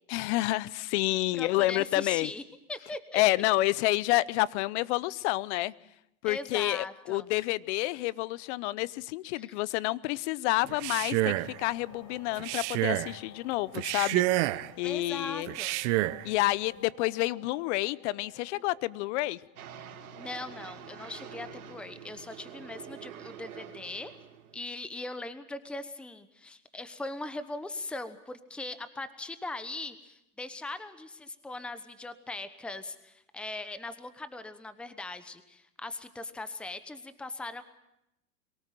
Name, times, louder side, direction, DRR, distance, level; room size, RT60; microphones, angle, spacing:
voice 1, 0.1-2.3 3.1-5.7 6.2-14.4 14.8-15.5 16.2-19.4, left 19 dB, 50° left, 21 dB, 0.7 m, -29 dB
voice 2, 1.3-2.4 2.7-3.2 6.2-7.3 9.3-9.5 14.8-15.8 20.1-24.1 24.5-37.6, left 2 dB, ahead, 12 dB, 1.0 m, -40 dB
Male speech man speaking, 10.7-11.6 12.4-13.1 13.7-14.7 15.5-16.2, right 17 dB, 55° right, 0.9 m, -28 dB
sound 1, 11.4-20.7, left 5 dB, 35° left, 5.9 m, -54 dB
sound 2, 19.6-24.6, right 8 dB, 80° right, 3.9 m, -46 dB
23.0 x 18.0 x 7.5 m, 0.85 s
hypercardioid pair, 120°, 43 cm